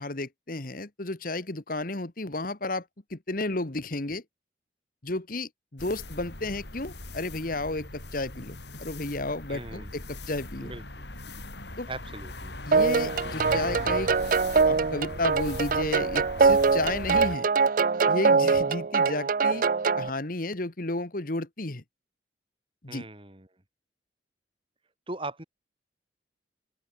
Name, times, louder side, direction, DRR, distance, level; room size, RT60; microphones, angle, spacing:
voice 1, 0.0-2.8 3.1-4.2 5.0-10.7 11.8-11.9 12.7-14.1 14.6-17.5 18.1-19.6 20.0-21.8 22.8-23.0, left 2 dB, 50° left, 1.6 m, -32 dB
sound 1, 5.8-17.4, left 2 dB, 65° left, 4.7 m, -40 dB
voice 2, 9.5-9.9 10.6-11.0 11.9-12.6 22.9-23.5 25.1-25.4, right 2 dB, 30° right, 2.8 m, -39 dB
sound 2, 12.7-20.1, right 4 dB, 45° right, 0.5 m, -23 dB
open air
head